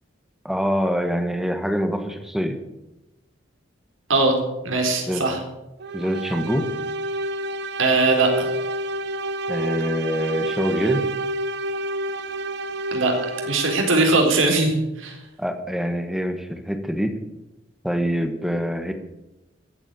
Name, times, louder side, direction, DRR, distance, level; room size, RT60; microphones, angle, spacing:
voice 1, 0.4-2.6 5.1-5.3 5.9-6.7 9.5-11.1 15.4-17.2 17.8-18.9, equal, ahead, 7 dB, 1.3 m, -25 dB
voice 2, 4.6-5.4 7.8-8.5 12.9-13.1 13.5-15.2, right 3 dB, 80° right, 2 dB, 4.0 m, -20 dB
sound 1, 5.8-14.2, right 1 dB, 55° right, 0.8 m, -29 dB
14.5 x 8.5 x 9.1 m, 0.96 s
head